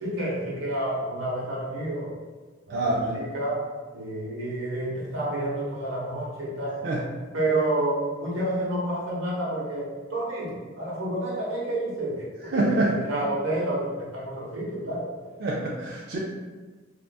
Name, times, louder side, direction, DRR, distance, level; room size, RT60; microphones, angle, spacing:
voice 1, 0.0-2.1 2.7-3.7 3.9-6.8 7.3-15.1, right 1 dB, 85° right, -5 dB, 1.0 m, -29 dB
voice 2, 2.7-3.2 6.8-7.0 12.5-12.9 15.4-16.2, right 2 dB, 60° right, -4 dB, 0.4 m, -25 dB
3.6 x 2.4 x 2.3 m, 1.3 s
head